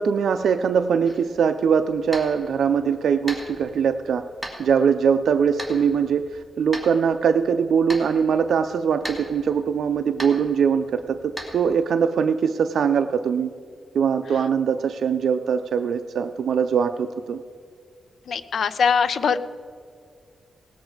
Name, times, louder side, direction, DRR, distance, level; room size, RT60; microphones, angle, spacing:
voice 1, 0.0-4.2 4.6-13.5 13.9-17.4, right 6 dB, 80° right, 7 dB, 0.4 m, -22 dB
sound 1, 1.1-11.8, right 1 dB, ahead, 1.9 m, -40 dB
voice 2, 18.3-19.4, left 6 dB, 65° left, 13 dB, 0.5 m, -21 dB
18.5 x 8.1 x 4.9 m, 2.2 s
wide cardioid pair, 135°, 0 cm